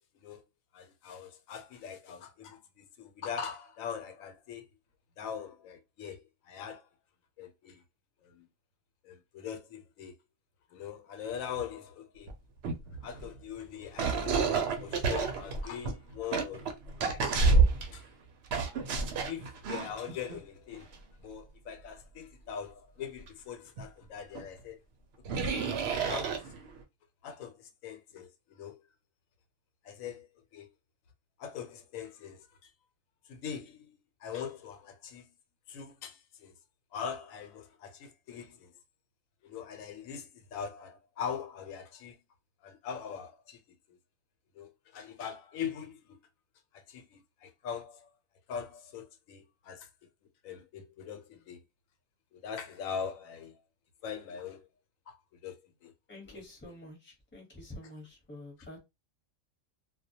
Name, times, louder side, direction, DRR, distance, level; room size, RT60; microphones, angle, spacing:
voice 1, 0.7-4.7 5.2-6.8 7.4-7.8 8.2-8.5 9.0-10.1 10.7-12.3 13.0-14.4 14.8-17.2 17.9-18.1 19.2-20.9 21.2-24.8 25.3-25.5 26.1-26.5 27.2-28.8 29.8-30.3 30.5-30.7 31.4-32.7 33.3-35.3 35.7-36.5 36.9-38.7 39.4-42.2 42.6-43.6 44.6-46.2 46.7-48.1 48.5-49.9 50.4-51.6 52.3-53.6 54.0-54.6 55.1-55.2 55.4-55.9 56.2-56.4, left 7 dB, 90° left, 1.0 m, -42 dB
sound 1, 12.3-12.4 12.6-13.4 14.0-18.0 18.5-20.4 20.8-20.9 23.3-23.4 23.8-23.9 24.3-24.4 25.2-26.8, right 4 dB, 65° right, 0.7 m, -29 dB
voice 2, 56.1-58.8, left 1 dB, 10° left, 0.8 m, -48 dB
2.3 x 2.1 x 2.7 m
omnidirectional pair, 1.4 m